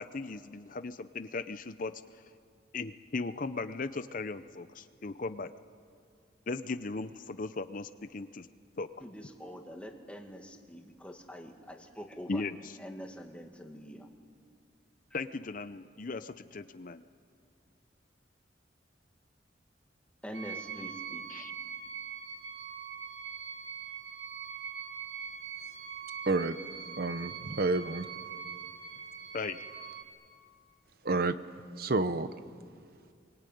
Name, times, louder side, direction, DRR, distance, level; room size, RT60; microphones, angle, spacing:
voice 1, 0.0-2.2 2.7-5.5 6.5-8.5 8.8-8.9 12.3-12.8 15.1-17.0 21.3-21.5 29.3-29.6, left 3 dB, 45° left, 11 dB, 0.6 m, -37 dB
voice 2, 9.0-12.4 12.8-14.1 20.2-21.5, equal, 5° left, 3 dB, 2.1 m, -45 dB
sound 1, 20.3-30.0, right 7 dB, 80° right, 5.8 m, -42 dB
voice 3, 26.3-26.6 27.0-28.1 31.0-31.3 31.8-32.3, right 3 dB, 55° right, 11 dB, 0.8 m, -29 dB
26.5 x 23.5 x 9.3 m, 2.3 s
head